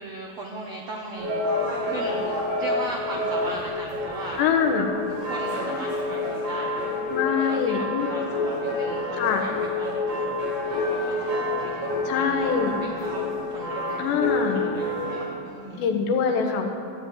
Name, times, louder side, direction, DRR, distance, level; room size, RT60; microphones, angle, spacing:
voice 1, 0.0-4.5 5.1-6.8 7.3-16.0, right 2 dB, 85° right, 0 dB, 1.4 m, -38 dB
sound 1, 1.1-15.2, left 2 dB, 55° right, 6.0 m, -28 dB
voice 2, 4.4-4.9 7.1-8.1 9.2-9.4 12.1-12.8 14.0-14.6 15.7-16.7, left 6 dB, 80° left, 3 dB, 3.5 m, -24 dB
15.0 x 10.0 x 8.8 m, 2.4 s
omnidirectional pair, 4.9 m